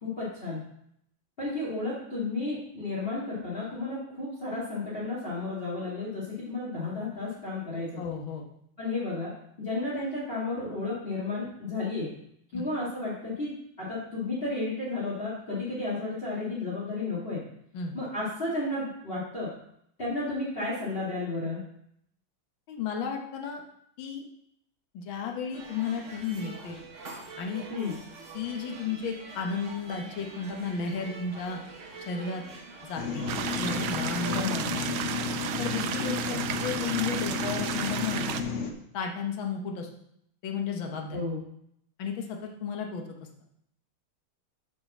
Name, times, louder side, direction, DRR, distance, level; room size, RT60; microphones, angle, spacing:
voice 1, 0.0-0.6 1.4-8.0 8.8-9.3 9.6-12.1 12.5-13.5 13.8-17.4 17.9-19.5 20.0-21.6 27.7-27.9 34.2-34.7 41.1-41.4, left 2 dB, 30° left, -6 dB, 2.3 m, -32 dB
voice 2, 8.0-8.4 12.5-12.6 17.7-18.0 22.7-23.6 24.0-24.2 24.9-26.8 27.4-27.7 28.3-31.6 32.0-32.4 32.8-33.2 33.6-35.0 35.6-38.2 38.9-39.9 40.4-41.2 42.0-43.0, left 5 dB, 75° left, 2 dB, 1.8 m, -33 dB
sound 1, 25.5-33.9, right 3 dB, 40° right, 1.5 m, -45 dB
sound 2, 33.0-38.7, left 4 dB, 50° left, 0.9 m, -32 dB
sound 3, 33.3-38.4, right 9 dB, 75° right, 1.1 m, -33 dB
7.7 x 5.1 x 6.0 m, 0.72 s
omnidirectional pair, 2.2 m